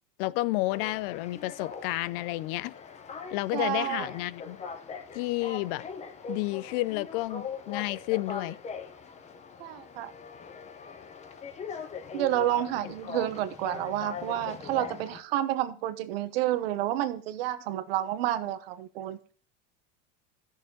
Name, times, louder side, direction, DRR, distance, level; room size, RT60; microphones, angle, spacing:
voice 1, 0.2-2.8 3.3-4.6 5.1-5.9 6.3-8.6 12.8-12.9, left 19 dB, 65° left, 0.5 m, -31 dB
sound 1, 0.7-15.2, left 5 dB, 25° left, 1.0 m, -41 dB
voice 2, 3.5-4.1 9.6-10.1 12.1-19.2, right 13 dB, 85° right, 1.0 m, -30 dB
14.0 x 6.6 x 3.8 m
supercardioid pair, 135°, 29 cm